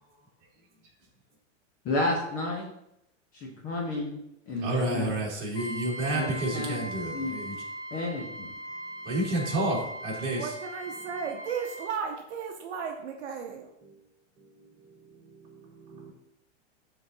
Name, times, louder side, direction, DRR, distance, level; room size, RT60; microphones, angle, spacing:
voice 1, 1.8-2.7 3.3-5.2 6.1-6.8 7.1-7.4 7.9-8.5, left 2 dB, 20° left, -1 dB, 0.8 m, -32 dB
voice 2, 4.6-7.5 9.1-10.5 13.8-13.9 15.4-16.1, right 1 dB, 25° right, -5 dB, 2.3 m, -30 dB
Trumpet, 5.5-11.9, right 1 dB, 60° left, 2.3 m, -40 dB
voice 3, 10.3-13.7, right 6 dB, 60° right, 2 dB, 0.9 m, -35 dB
10.5 x 3.9 x 2.7 m, 0.79 s
supercardioid pair, 160°, 38 cm